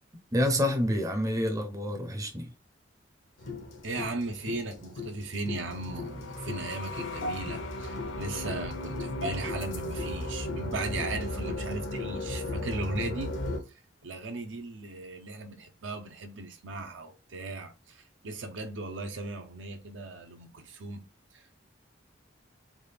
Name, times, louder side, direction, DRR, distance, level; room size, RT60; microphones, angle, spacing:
voice 1, 0.3-2.5, left 1 dB, 20° right, 0.5 m, -28 dB
sound 1, 3.4-13.6, left 2 dB, 85° left, 0.8 m, -35 dB
voice 2, 3.8-13.3 13.7-21.5, right 3 dB, 70° right, 0.6 m, -37 dB
3.4 x 2.3 x 3.3 m
head